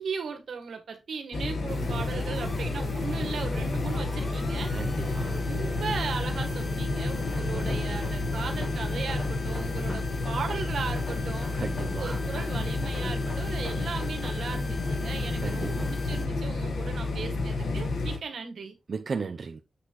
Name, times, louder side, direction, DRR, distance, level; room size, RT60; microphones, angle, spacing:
voice 1, 0.0-5.0 5.3-11.5 11.9-18.8, right 5 dB, 80° right, 1.8 m, -37 dB
sound 1, 1.3-18.2, left 3 dB, 65° left, 1.5 m, -30 dB
sound 2, 1.7-16.3, left 2 dB, 20° left, 1.1 m, -44 dB
voice 2, 4.7-5.5 7.4-8.0 11.5-12.2 15.4-15.9 18.9-19.6, right 5 dB, 45° right, 0.6 m, -36 dB
sound 3, 7.3-8.8 9.1-10.6 10.9-12.5 12.8-14.4, left 2 dB, 45° left, 3.4 m, -43 dB
7.7 x 6.0 x 3.1 m
wide cardioid pair, 155°, 0 cm